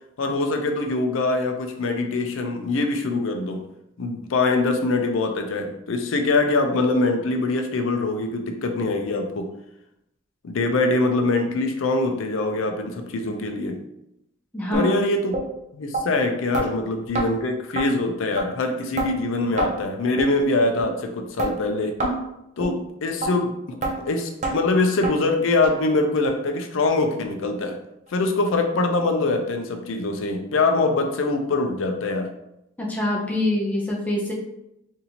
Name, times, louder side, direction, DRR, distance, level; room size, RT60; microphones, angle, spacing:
voice 1, 0.2-3.7 4.0-9.5 10.4-13.8 14.7-15.4 15.7-22.0 22.6-27.8 28.1-32.3, left 2 dB, 80° left, 5 dB, 0.5 m, -23 dB
voice 2, 14.5-15.1 32.8-34.3, left 1 dB, 10° left, -3 dB, 0.6 m, -25 dB
sound 1, 14.7-14.9 15.3-15.5 15.9-16.0 16.5-16.7 17.1-17.3 17.8-17.9 18.4-18.5 19.0-19.1 19.6-19.7 20.2-20.3 20.8-20.9 21.4-21.5 22.0-22.2 22.6-22.7 23.2-23.3 23.8-23.9 24.4-24.6 25.0-25.1 25.6-25.7 26.2-26.3 26.9-27.0 27.5-27.6, right 2 dB, 35° right, 0.6 m, -26 dB
4.0 x 2.7 x 2.8 m, 0.83 s
head